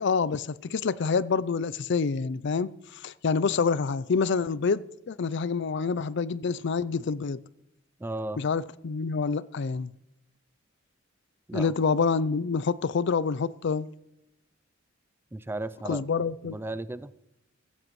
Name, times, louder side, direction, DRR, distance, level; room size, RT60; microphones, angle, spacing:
voice 1, 0.0-2.7 3.0-7.4 8.4-9.9 11.5-13.9 15.9-16.6, left 5 dB, 60° left, 0.5 m, -27 dB
voice 2, 8.0-8.4 11.5-11.7 15.3-16.0 16.4-17.1, right 2 dB, 10° right, 0.4 m, -35 dB
15.5 x 15.0 x 3.1 m
head